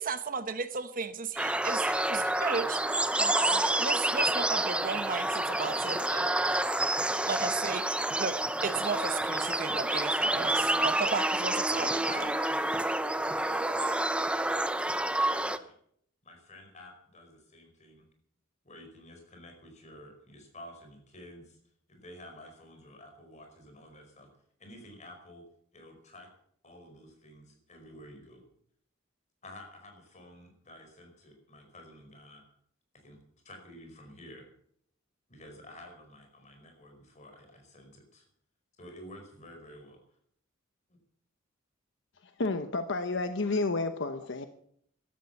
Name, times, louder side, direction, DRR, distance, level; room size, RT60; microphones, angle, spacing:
voice 1, 0.0-6.6 6.9-7.8 8.2-12.1, right 5 dB, 45° right, 11 dB, 1.0 m, -35 dB
sound 1, 1.4-15.6, right 1 dB, 5° right, 0.7 m, -28 dB
voice 2, 12.0-15.7 16.2-18.1 18.6-21.6 21.9-24.3 24.6-25.4 25.7-26.3 26.6-28.4 29.4-32.4 33.0-33.2 33.4-34.5 35.3-38.3 38.8-40.0, left 1 dB, 35° left, 4 dB, 5.2 m, -51 dB
voice 3, 42.4-44.5, left 3 dB, 65° left, 9 dB, 1.0 m, -30 dB
15.0 x 12.5 x 7.1 m, 0.68 s
head